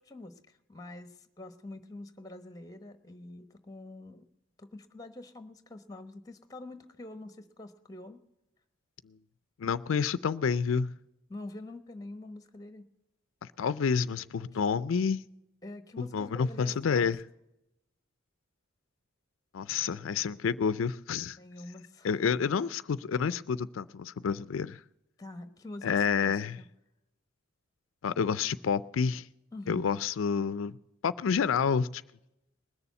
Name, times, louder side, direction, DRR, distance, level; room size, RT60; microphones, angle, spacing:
voice 1, 0.0-4.3 4.6-8.2 11.3-12.8 14.5-14.6 15.6-17.1 21.4-22.2 25.2-26.7 29.5-29.9, left 2 dB, 20° left, 1.1 m, -45 dB
voice 2, 9.6-10.9 13.4-15.2 16.0-17.2 19.5-21.4 22.0-24.8 25.8-26.6 28.0-29.3 29.7-30.8 31.0-32.0, left 6 dB, 85° left, 0.4 m, -29 dB
20.5 x 6.9 x 8.2 m
head